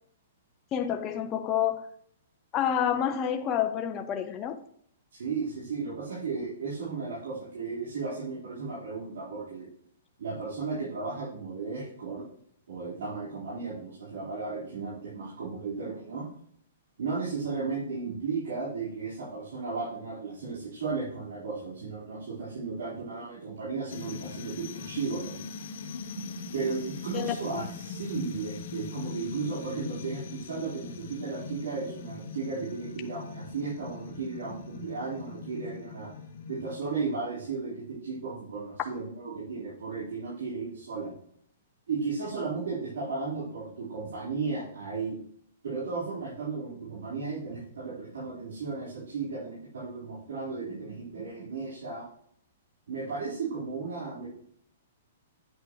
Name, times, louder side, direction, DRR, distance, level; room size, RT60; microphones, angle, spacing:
voice 1, 0.7-1.9 2.5-4.6 27.1-27.4, left 9 dB, 25° left, 5 dB, 0.6 m, -28 dB
voice 2, 5.1-9.7 10.2-12.2 12.7-16.3 17.0-25.4 26.1-36.1 36.5-41.1 41.9-45.2 45.6-52.1 52.9-54.3, right 4 dB, 80° right, -8 dB, 4.1 m, -35 dB
sound 1, 23.9-37.2, left 4 dB, 60° left, 1.0 m, -41 dB
9.3 x 8.4 x 3.1 m, 0.66 s
hypercardioid pair, 145°, 0 cm